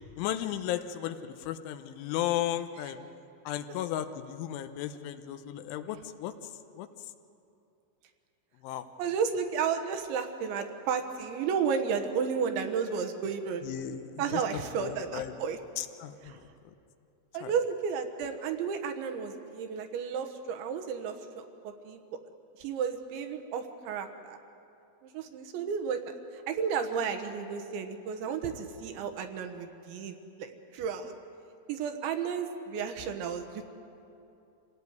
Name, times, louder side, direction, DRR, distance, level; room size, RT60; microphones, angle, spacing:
voice 1, 0.2-3.0 3.5-6.3 6.8-6.9 8.6-8.9 13.6-14.4 14.8-15.3 15.8-16.4 17.4-17.5, left 12 dB, 80° left, 9 dB, 3.2 m, -35 dB
voice 2, 9.0-13.7 14.2-15.6 16.3-16.4 17.3-22.2 22.6-24.4 25.0-31.1 31.7-33.7, right 6 dB, 75° right, 6 dB, 3.4 m, -33 dB
27.0 x 17.0 x 9.5 m, 2.7 s
omnidirectional pair, 5.7 m